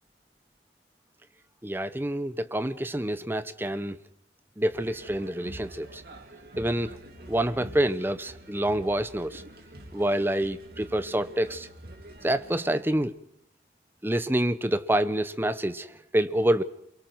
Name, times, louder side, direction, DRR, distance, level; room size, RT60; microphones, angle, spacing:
voice 1, 1.6-4.0 4.6-6.0 6.6-7.0 7.3-9.4 9.9-11.7 12.2-13.1 14.0-16.6, right 1 dB, 10° right, 12 dB, 0.8 m, -27 dB
sound 1, 4.7-12.8, right 1 dB, 60° right, 2.8 m, -46 dB
28.0 x 23.0 x 4.7 m, 0.73 s
head